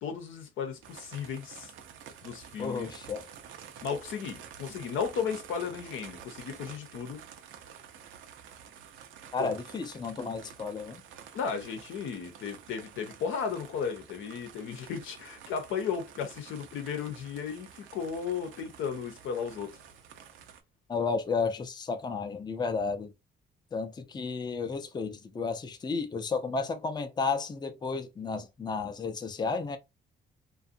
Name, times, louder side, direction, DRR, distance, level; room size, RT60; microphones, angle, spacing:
voice 1, 0.0-1.7 2.2-2.9 3.8-7.2 9.4-9.5 11.3-19.8, left 6 dB, 80° left, 0.8 m, -35 dB
sound 1, 0.8-20.6, right 8 dB, 80° right, 0.5 m, -50 dB
voice 2, 2.6-3.3 9.3-11.0 20.9-23.1 23.7-29.8, left 4 dB, 20° left, 0.5 m, -32 dB
2.5 x 2.3 x 2.5 m
cardioid pair, 90°, 20 cm